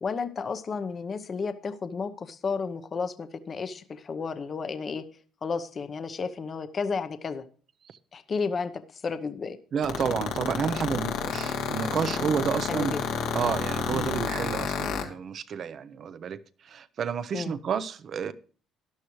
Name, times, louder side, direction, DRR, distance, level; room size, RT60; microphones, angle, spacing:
voice 1, 0.0-5.0 5.4-7.4 8.1-9.6 12.7-13.0 13.9-14.1 17.3-17.5, left 5 dB, 35° left, 0.8 m, -32 dB
voice 2, 9.7-13.0 13.3-16.4 16.6-18.3, right 7 dB, 45° right, 0.7 m, -30 dB
sound 1, 9.8-15.0, left 7 dB, 85° left, 2.3 m, -29 dB
13.0 x 11.5 x 3.1 m
cardioid pair, 125°, 0 cm